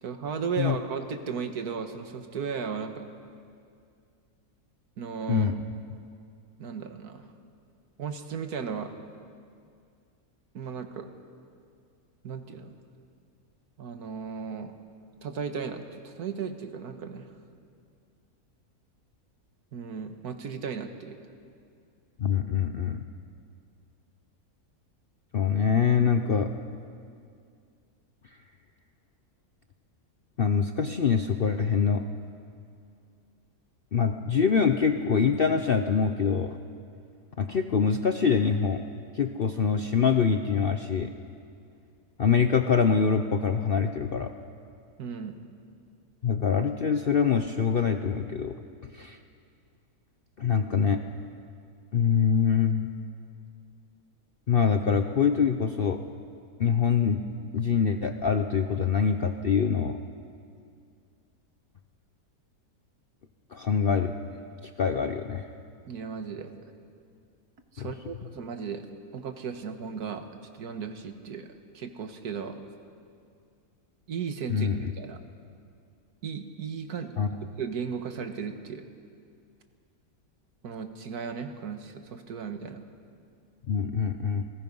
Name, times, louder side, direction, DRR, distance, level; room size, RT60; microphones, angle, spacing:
voice 1, 0.0-3.1 5.0-5.5 6.6-7.3 8.0-8.9 10.5-11.1 12.2-12.8 13.8-14.7 15.2-17.3 19.7-21.2 45.0-45.4 65.9-66.5 67.7-70.3 70.6-72.6 74.1-75.2 76.2-77.2 77.6-78.9 80.6-82.9, right 6 dB, 85° right, 7 dB, 1.9 m, -35 dB
voice 2, 22.2-23.1 25.3-26.5 30.4-32.0 33.9-36.6 37.4-38.8 39.1-41.1 42.2-44.3 46.2-48.5 48.9-49.2 50.4-51.0 51.9-52.9 54.5-56.0 56.6-57.2 57.5-60.0 63.5-64.1 64.8-65.5 67.8-67.9 74.5-74.9 77.2-77.3 83.7-84.4, left 6 dB, 50° left, 7 dB, 0.8 m, -24 dB
30.0 x 19.5 x 5.5 m, 2.3 s
omnidirectional pair, 1.6 m